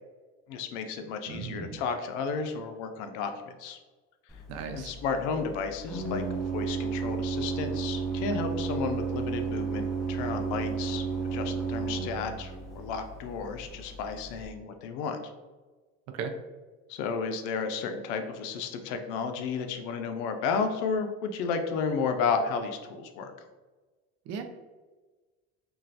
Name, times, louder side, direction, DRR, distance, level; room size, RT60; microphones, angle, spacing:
voice 1, 0.5-3.8 4.7-6.2 6.5-15.2 16.9-23.3, left 5 dB, 75° left, 6 dB, 0.5 m, -32 dB
voice 2, 1.3-1.8 4.5-4.9 16.1-16.3 24.3-24.4, right 5 dB, 60° right, 6 dB, 0.5 m, -36 dB
Organ, 4.3-14.4, right 5 dB, ahead, 0.5 m, -33 dB
2.9 x 2.3 x 2.7 m, 1.3 s
cardioid pair, 110°, 30 cm